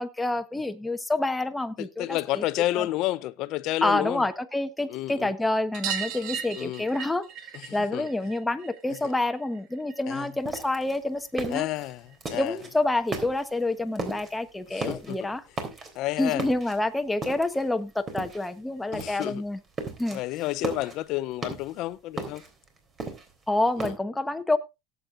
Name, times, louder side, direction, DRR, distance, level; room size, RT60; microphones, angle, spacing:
voice 1, 0.0-2.4 2.8-2.9 3.8-7.3 7.7-11.7 12.4-15.4 16.2-19.6 20.0-20.2 23.5-24.6, left 2 dB, 10° left, 1.1 m, -28 dB
voice 2, 1.8-4.2 4.9-5.3 6.6-6.9 7.5-7.7 7.9-8.1 9.0-9.1 10.1-10.3 11.5-12.0 12.3-12.6 14.7-15.3 15.9-16.4 18.9-19.4 20.1-22.4 23.8-23.9, left 16 dB, 60° left, 0.6 m, -30 dB
sound 1, 5.7-10.9 11.1-12.3 13.7-13.8 14.0-14.1 14.4-14.5 15.7-15.8 16.1-16.2 16.6-16.7 17.9-18.0 18.8-18.9, right 8 dB, 60° right, 1.8 m, -38 dB
sound 2, 10.4-12.7 13.1-13.6 13.9-14.4 14.7-15.2 15.5-16.1 16.4-17.7 18.1-18.6 18.9-19.3 19.6-20.2 20.5-21.8 22.2-23.9, right 3 dB, 30° right, 3.4 m, -36 dB
18.0 x 8.2 x 2.5 m
supercardioid pair, 125°, 0 cm